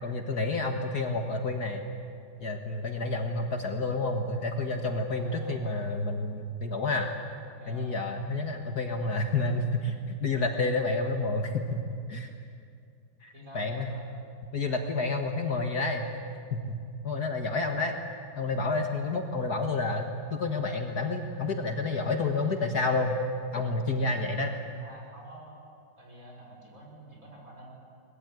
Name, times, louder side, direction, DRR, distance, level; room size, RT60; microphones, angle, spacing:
voice 1, 0.0-1.8 2.4-7.1 7.7-12.3 13.2-13.9 14.5-16.1 16.5-16.8 17.0-18.0 18.4-23.2 23.5-24.5, left 3 dB, 50° left, 4 dB, 1.9 m, -29 dB
voice 2, 5.1-5.7 7.5-8.0 13.3-14.0 24.8-25.6 26.0-27.7, equal, 40° right, -2 dB, 6.4 m, -48 dB
24.0 x 20.5 x 9.7 m, 2.4 s
omnidirectional pair, 2.3 m